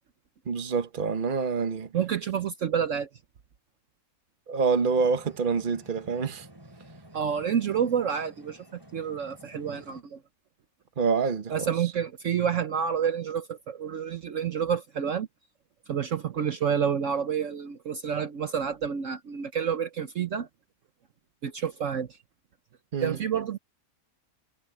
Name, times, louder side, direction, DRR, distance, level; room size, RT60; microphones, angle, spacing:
voice 1, 0.4-1.9 4.5-6.5 11.0-11.9 22.9-23.2, right 5 dB, 35° right, 1.2 m, -27 dB
voice 2, 1.9-3.1 7.1-8.6 8.9-10.2 11.5-15.3 15.9-20.5 21.4-22.2 23.0-23.6, right 8 dB, 60° right, 1.2 m, -29 dB
sound 1, 4.9-10.0, equal, 15° right, 2.9 m, -51 dB
omnidirectional pair, 1.6 m